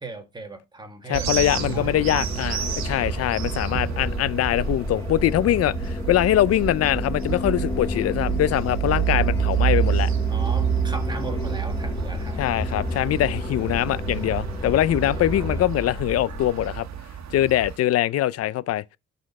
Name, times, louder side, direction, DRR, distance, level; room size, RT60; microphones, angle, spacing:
voice 1, 0.0-2.3 10.3-12.8 17.4-17.5, right 3 dB, 15° right, 1.5 m, -38 dB
voice 2, 1.1-10.1 12.4-16.9 17.3-18.8, left 13 dB, 55° left, 0.4 m, -23 dB
sound 1, 1.1-17.8, right 10 dB, 70° right, 1.3 m, -28 dB
sound 2, 1.3-15.7, left 2 dB, 10° left, 1.0 m, -33 dB
sound 3, 2.6-16.5, left 5 dB, 40° left, 1.3 m, -37 dB
11.0 x 4.3 x 4.1 m
cardioid pair, 140°, 29 cm